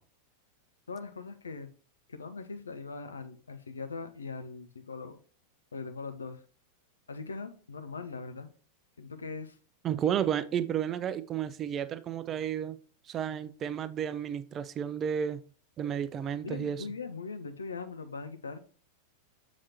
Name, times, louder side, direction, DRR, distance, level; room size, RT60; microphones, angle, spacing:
voice 1, 0.9-1.7 2.1-5.2 5.7-6.4 7.1-8.5 9.0-9.6 16.2-18.7, left 4 dB, 75° left, 0.6 m, -41 dB
voice 2, 9.8-12.8 13.1-15.4 15.8-16.8, right 9 dB, 30° right, 0.3 m, -32 dB
7.2 x 4.9 x 2.8 m
figure-of-eight pair, 90°, 0 cm